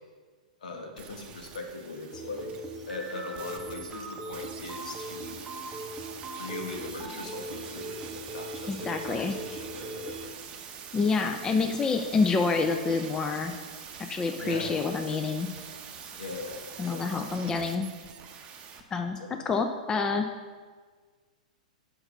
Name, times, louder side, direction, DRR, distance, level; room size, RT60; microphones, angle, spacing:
voice 1, 0.6-2.6 2.9-5.4 6.4-10.3 14.4-14.7 16.2-16.6 16.9-17.1 19.2-19.3, left 3 dB, 70° left, 2 dB, 1.3 m, -40 dB
sound 1, 1.0-18.8 19.1-19.2, right 7 dB, 30° right, 0.7 m, -45 dB
sound 2, 2.1-10.3, right 2 dB, 5° right, 1.0 m, -40 dB
voice 2, 8.7-9.4 10.9-13.5 14.1-15.5 16.8-17.9 18.9-19.2 19.4-20.3, left 4 dB, 15° left, 6 dB, 0.4 m, -27 dB
5.8 x 5.3 x 5.5 m, 1.5 s
hypercardioid pair, 110°, 4 cm